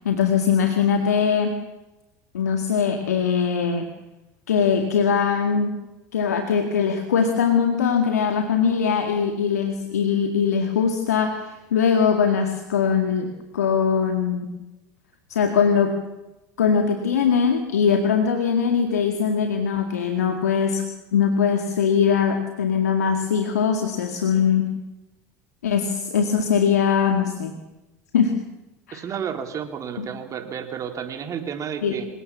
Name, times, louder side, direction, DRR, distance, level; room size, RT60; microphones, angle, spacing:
voice 1, 0.1-1.6 2.3-3.9 4.5-5.8 6.1-13.3 13.5-14.5 15.3-15.9 16.6-20.8 21.1-24.7 25.6-27.5 28.1-28.3 28.9-29.0 30.0-30.1 31.8-31.9, left 6 dB, 85° left, 5 dB, 2.1 m, -21 dB
voice 2, 28.9-32.1, right 8 dB, 40° right, 6 dB, 3.8 m, -31 dB
26.5 x 18.5 x 7.5 m, 1.0 s
hypercardioid pair, 80°, 8 cm